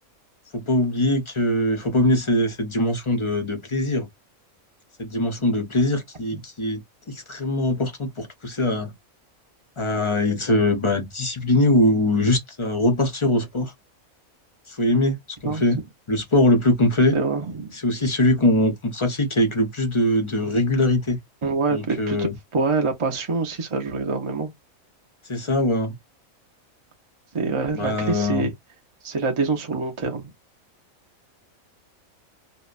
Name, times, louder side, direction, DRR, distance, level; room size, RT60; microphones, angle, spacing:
voice 1, 0.5-4.1 5.0-6.8 7.1-8.9 9.8-13.7 14.7-15.8 16.1-17.2 17.7-21.2 21.7-22.3 25.3-26.0 27.7-28.5, left 1 dB, 35° left, 0.5 m, -22 dB
voice 2, 15.4-15.8 17.1-17.7 21.4-24.5 27.3-28.5 29.0-30.3, right 4 dB, 40° right, 0.4 m, -25 dB
2.7 x 2.1 x 2.4 m
omnidirectional pair, 1.4 m